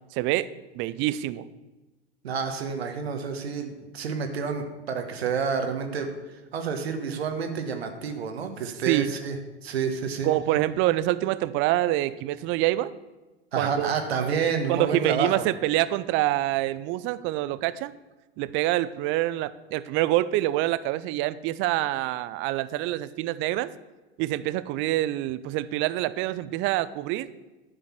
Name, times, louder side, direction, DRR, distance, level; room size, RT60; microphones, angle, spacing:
voice 1, 0.1-1.5 8.9-9.1 10.2-12.9 13.6-14.4 14.7-17.9 18.4-23.7 24.2-27.3, right 15 dB, 40° right, 16 dB, 0.5 m, -26 dB
voice 2, 2.2-6.1 6.5-9.4 9.6-10.3 13.5-15.4, right 5 dB, 75° right, 6 dB, 1.3 m, -29 dB
11.0 x 5.4 x 6.1 m, 1.1 s
figure-of-eight pair, 85°, 32 cm